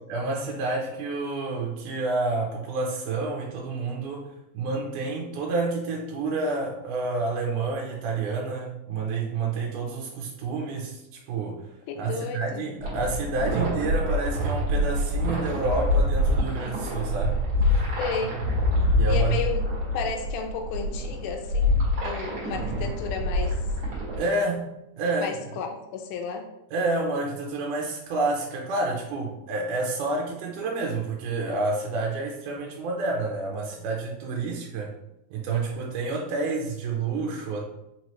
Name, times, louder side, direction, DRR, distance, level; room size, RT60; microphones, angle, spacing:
voice 1, 0.1-11.7 12.0-17.4 17.7-17.8 18.9-19.4 24.2-24.7 25.0-25.4 26.7-34.9 35.3-37.6, right 3 dB, 80° right, -1 dB, 2.1 m, -29 dB
voice 2, 11.9-12.6 18.0-18.4 19.1-19.6 19.9-21.8 22.0-23.6 25.2-26.5 34.4-34.5, left 6 dB, 80° left, 3 dB, 2.0 m, -33 dB
sound 1, 12.8-24.2, left 1 dB, 50° right, 1.8 m, -26 dB
5.4 x 3.1 x 2.9 m, 0.89 s
omnidirectional pair, 3.7 m